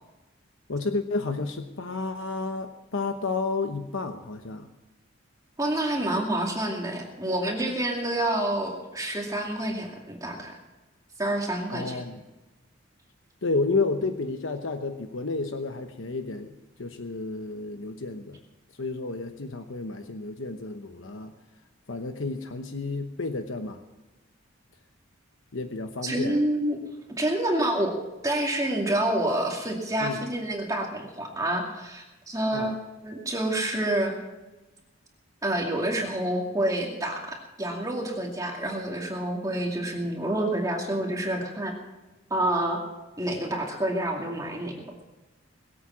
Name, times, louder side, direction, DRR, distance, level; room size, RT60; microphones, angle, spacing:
voice 1, 0.7-4.7 11.7-12.2 13.4-18.4 18.7-21.3 21.9-23.8 25.5-26.4 30.0-30.2 32.5-32.8, left 3 dB, 75° left, 7 dB, 1.0 m, -31 dB
voice 2, 5.6-10.6 11.2-12.0 26.0-26.8 27.2-27.9 28.2-32.7 33.0-34.1 35.4-41.7 42.3-42.8 43.2-44.7, right 1 dB, 15° right, 0 dB, 2.3 m, -28 dB
21.5 x 8.5 x 6.2 m, 1.1 s
head